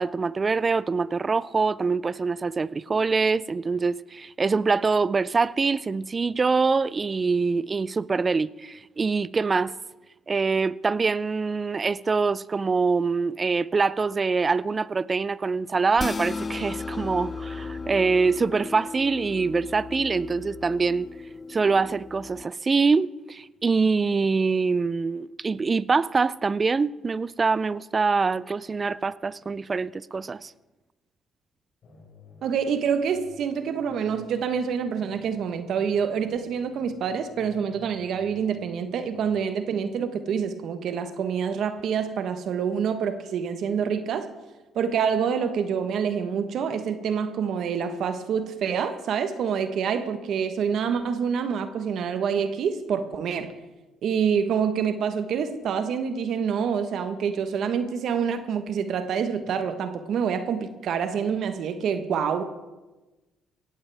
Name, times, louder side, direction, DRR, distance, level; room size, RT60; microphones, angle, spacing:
voice 1, 0.0-9.7 10.3-21.1 21.5-30.5, right 4 dB, 30° right, 0.4 m, -24 dB
sound 1, 16.0-22.4, left 4 dB, 30° left, 0.4 m, -35 dB
sound 2, 31.8-39.3, left 3 dB, 60° left, 4.8 m, -53 dB
voice 2, 32.4-44.3 44.7-53.5 54.0-62.4, right 7 dB, 65° right, 1.1 m, -27 dB
18.0 x 14.5 x 3.4 m
supercardioid pair, 75°, 0 cm